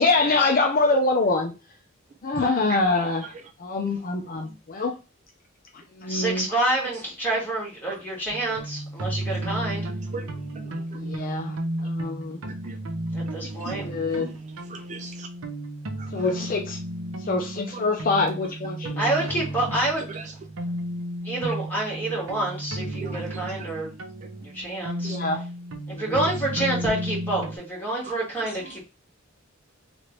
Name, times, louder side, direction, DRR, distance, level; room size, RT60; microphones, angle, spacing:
voice 1, 0.0-1.5 2.2-3.2 3.6-4.9 6.0-6.5 10.9-11.6 11.8-12.4 13.8-14.3 16.1-16.8 17.3-19.1 25.0-25.4 25.9-26.3, left 3 dB, 45° left, 0.5 m, -25 dB
voice 2, 2.3-3.1 3.3-3.4 4.2-4.6 7.9-8.0 9.4-11.2 12.6-12.8 13.4-14.4 14.7-15.3 16.0-16.3 17.7-17.8 18.8-18.9 19.7-19.8 20.1-20.3 22.1-22.2 23.0-23.8 25.0-25.2 28.0-28.8, right 4 dB, 35° right, 0.3 m, -41 dB
voice 3, 6.1-9.9 13.1-13.8 19.0-20.1 21.2-23.9 24.4-25.1 26.0-28.8, right 1 dB, 10° left, 1.5 m, -28 dB
sound 1, 8.3-27.6, right 1 dB, 90° right, 0.7 m, -33 dB
3.2 x 2.5 x 2.9 m
head